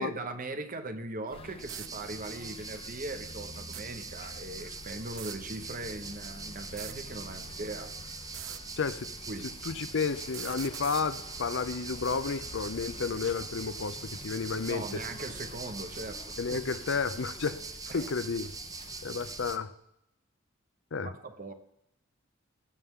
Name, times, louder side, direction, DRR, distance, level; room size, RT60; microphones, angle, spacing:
voice 1, 0.0-8.0 9.3-9.6 14.7-16.6 17.9-18.0 21.0-21.5, right 2 dB, 45° right, 8 dB, 1.0 m, -40 dB
sound 1, 1.3-19.6, left 2 dB, 30° left, 0.6 m, -48 dB
sound 2, 1.3-1.4 1.6-1.9 3.6-3.8 5.1-5.4 6.6-7.0 8.2-8.6 10.2-11.1, right 13 dB, 70° right, 0.5 m, -43 dB
sound 3, 1.6-19.6, right 4 dB, 15° right, 0.5 m, -43 dB
voice 2, 8.8-9.1 9.7-15.0 16.4-17.6 17.9-18.5 19.0-19.7 20.9-21.1, left 5 dB, 65° left, 13 dB, 0.7 m, -32 dB
19.5 x 8.2 x 3.7 m, 0.81 s
head